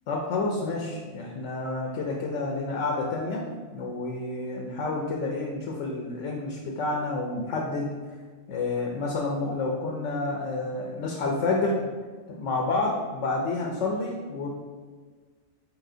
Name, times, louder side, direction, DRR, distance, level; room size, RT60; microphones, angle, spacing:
voice 1, 0.1-3.4 3.7-7.9 8.5-11.8 12.4-14.5, left 3 dB, 70° left, 0 dB, 0.9 m, -29 dB
4.8 x 4.1 x 2.6 m, 1.5 s
omnidirectional pair, 1.4 m